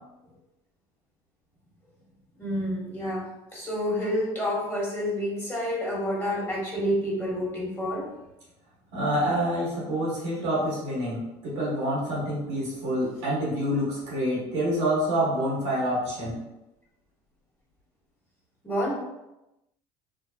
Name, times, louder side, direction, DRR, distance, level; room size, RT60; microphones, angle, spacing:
voice 1, 2.4-3.2 3.5-8.1 18.6-18.9, equal, 15° left, -6 dB, 1.3 m, -28 dB
voice 2, 8.9-16.4, equal, 90° right, -6 dB, 1.2 m, -27 dB
2.8 x 2.0 x 2.7 m, 0.93 s
supercardioid pair, 80°, 14 cm